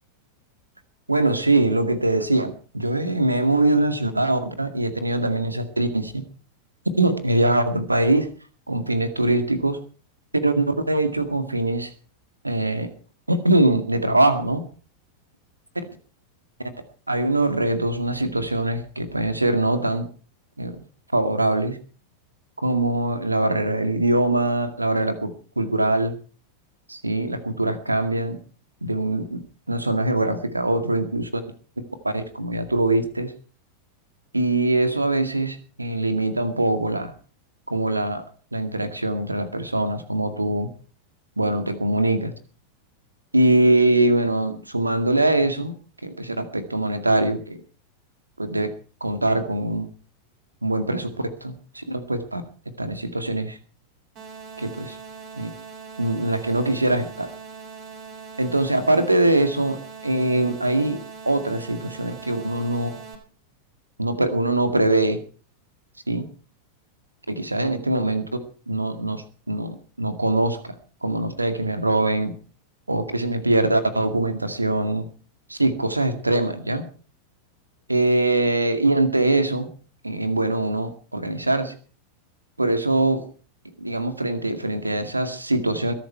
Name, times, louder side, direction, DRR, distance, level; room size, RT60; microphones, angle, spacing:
voice 1, 1.1-6.1 7.0-8.3 8.7-9.8 10.4-11.9 12.4-12.9 13.3-14.6 17.1-20.1 20.6-20.8 21.1-21.8 22.6-25.3 25.6-26.2 26.9-28.4 28.8-29.4 29.7-31.4 32.0-33.3 34.3-37.1 37.7-38.2 38.5-40.7 41.4-42.3 43.3-45.7 46.0-47.6 48.4-48.7 49.0-49.9 50.6-52.4 52.8-53.6 54.6-55.0 55.3-55.5 56.0-57.3 58.4-61.0 61.3-62.9 64.0-65.2 66.1-66.3 67.3-68.3 68.7-70.7 71.0-72.3 72.9-75.1 75.5-76.8 77.9-79.7 80.0-81.7 82.6-83.2 83.8-85.9, right 2 dB, 85° right, 10 dB, 2.2 m, -22 dB
sound 1, 54.2-63.2, right 5 dB, 40° right, 8.0 m, -41 dB
21.5 x 11.5 x 4.6 m, 0.40 s
figure-of-eight pair, 90°, 0 cm